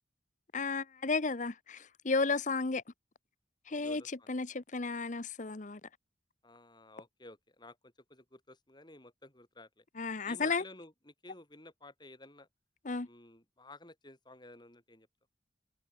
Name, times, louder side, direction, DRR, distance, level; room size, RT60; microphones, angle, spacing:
voice 1, 0.5-2.8 3.7-4.0 4.3-5.8 10.0-10.6 12.8-13.1, left 4 dB, 45° left, 1.0 m, -33 dB
voice 2, 3.7-4.4 6.4-9.8 10.2-12.5 13.0-15.1, left 2 dB, 25° left, 6.9 m, -54 dB
head